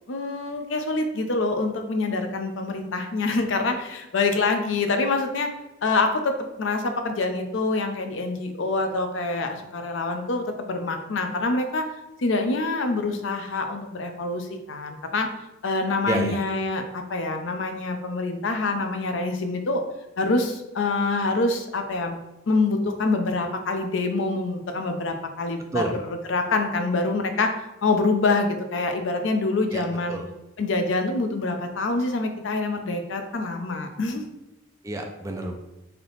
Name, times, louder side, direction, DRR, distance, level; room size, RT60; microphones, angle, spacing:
voice 1, 0.1-5.5 5.8-11.9 12.2-15.3 15.6-19.8 20.2-22.2 22.5-27.5 27.8-30.2 30.6-34.2, left 3 dB, 75° left, 6 dB, 0.5 m, -26 dB
voice 2, 16.1-16.4 25.7-25.9 29.7-30.2 34.8-35.5, right 1 dB, 15° right, 3 dB, 0.4 m, -29 dB
3.4 x 2.8 x 3.9 m, 0.99 s
head